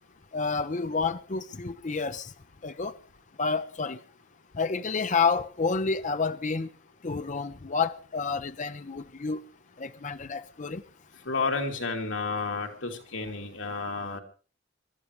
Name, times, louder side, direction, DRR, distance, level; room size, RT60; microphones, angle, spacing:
voice 1, 0.3-2.3 2.6-3.0 3.4-4.0 4.5-6.7 7.0-9.4 9.8-10.8, left 4 dB, 40° left, 0.7 m, -29 dB
voice 2, 11.2-14.2, left 4 dB, 85° left, 3.0 m, -31 dB
26.0 x 13.5 x 3.2 m
head